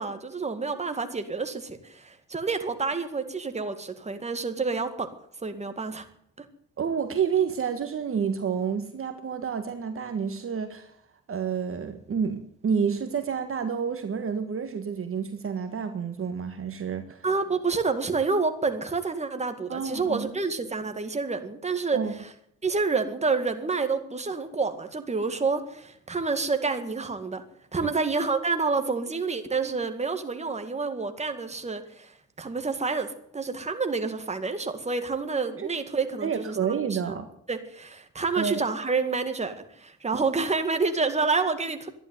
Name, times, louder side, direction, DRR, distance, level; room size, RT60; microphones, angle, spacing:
voice 1, 0.0-5.1 5.4-6.1 17.2-22.0 22.6-27.4 27.7-32.1 32.4-37.0 37.5-41.9, right 4 dB, 20° right, 7 dB, 2.1 m, -28 dB
voice 2, 6.8-10.9 11.3-17.2 19.7-20.3 21.9-22.1 27.8-27.9 35.6-35.7 36.2-37.3 38.4-38.6 40.1-40.2, right 6 dB, 45° right, 7 dB, 1.6 m, -29 dB
13.0 x 11.0 x 9.6 m, 0.70 s
cardioid pair, 90°, 30 cm